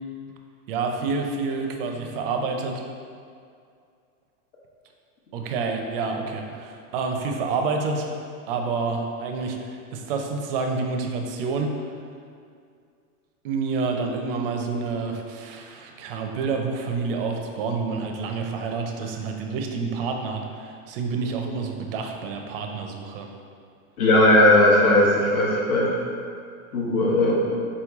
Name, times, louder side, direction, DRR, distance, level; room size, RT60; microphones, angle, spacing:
voice 1, 0.7-2.8 5.3-8.2 8.5-11.9 13.4-23.3, right 4 dB, 40° right, 3 dB, 0.4 m, -28 dB
voice 2, 24.0-25.9 26.7-27.3, left 1 dB, 70° left, -4 dB, 1.1 m, -17 dB
4.2 x 3.1 x 3.4 m, 2.3 s
supercardioid pair, 145°, 45 cm